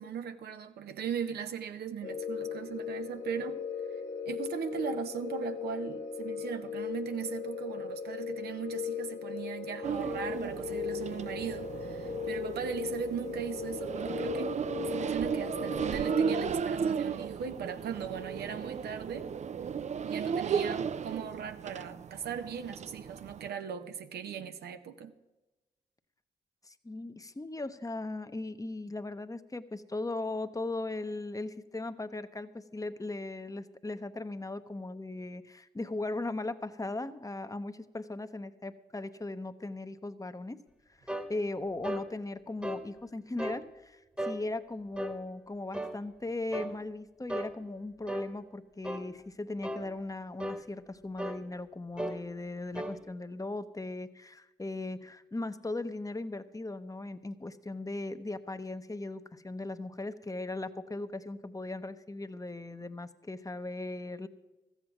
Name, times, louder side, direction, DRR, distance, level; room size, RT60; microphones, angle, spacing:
voice 1, 0.0-3.6 4.2-14.5 14.8-19.3 20.0-25.1, right 7 dB, 75° right, 8 dB, 0.7 m, -38 dB
sound 1, 2.0-16.5, left 7 dB, 45° left, 1.3 m, -38 dB
sound 2, 9.8-23.5, right 7 dB, 45° right, 0.4 m, -35 dB
voice 2, 26.7-40.6 41.0-64.3, left 2 dB, 20° left, 11 dB, 0.8 m, -38 dB
sound 3, 41.1-41.3 41.8-42.1 42.6-42.9 43.4-43.6 44.2-44.4 45.0-45.2 45.7-46.0 46.5-46.7 47.3-47.5 48.1-48.3 48.8-49.1 49.6-49.9 50.4-50.6 51.2-51.4 52.0-52.2 52.7-53.0, equal, 5° right, 1.2 m, -35 dB
14.0 x 8.1 x 6.0 m, 1.1 s
supercardioid pair, 40°, 17 cm